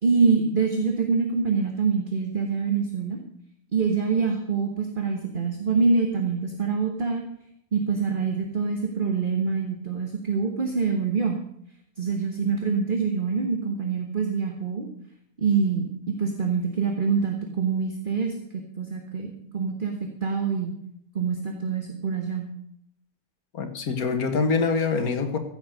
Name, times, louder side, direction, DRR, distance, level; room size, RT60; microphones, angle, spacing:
voice 1, 0.0-3.2 3.7-7.3 7.7-11.4 12.0-14.9 15.4-19.9 20.2-20.7 21.1-22.5, right 5 dB, 35° right, 1.5 m, -25 dB
voice 2, 23.5-25.4, left 4 dB, 75° left, 2.0 m, -25 dB
15.0 x 8.1 x 6.5 m
omnidirectional pair, 1.5 m